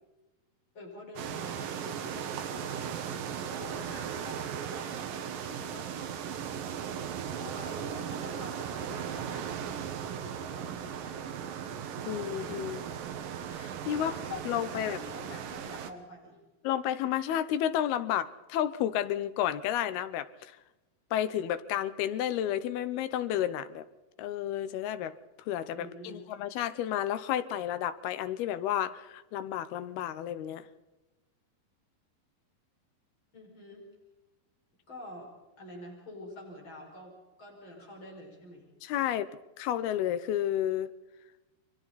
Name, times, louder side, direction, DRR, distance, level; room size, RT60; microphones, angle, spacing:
voice 1, 0.7-2.2 2.5-2.9 3.5-5.9 7.3-9.5 10.1-11.1 13.9-16.4 25.8-26.3 33.3-33.9 34.9-35.3 35.6-38.7, left 1 dB, 30° left, -1 dB, 6.3 m, -48 dB
sound 1, 1.2-15.9, right 8 dB, 70° right, 2.9 m, -37 dB
voice 2, 12.1-12.8 13.5-15.0 16.6-20.5 21.1-23.8 24.2-25.2 25.5-30.6 38.8-39.3 39.6-40.9, left 11 dB, 85° left, 13 dB, 2.9 m, -31 dB
30.0 x 23.5 x 4.1 m, 1.1 s
omnidirectional pair, 4.4 m